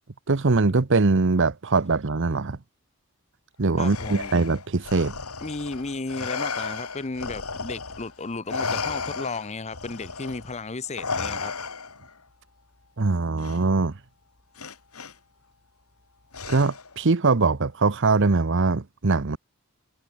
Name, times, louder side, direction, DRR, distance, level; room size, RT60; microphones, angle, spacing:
voice 1, 0.3-2.6 3.6-5.1 13.0-14.0 16.5-19.4, right 3 dB, 60° right, 0.9 m, -22 dB
Respiratory sounds, 3.8-8.1 8.5-12.1 13.4-13.6 14.6-15.1 16.3-17.0, left 4 dB, 85° left, 3.7 m, -34 dB
voice 2, 3.8-4.3 5.4-11.5, left 3 dB, 30° left, 0.8 m, -34 dB
head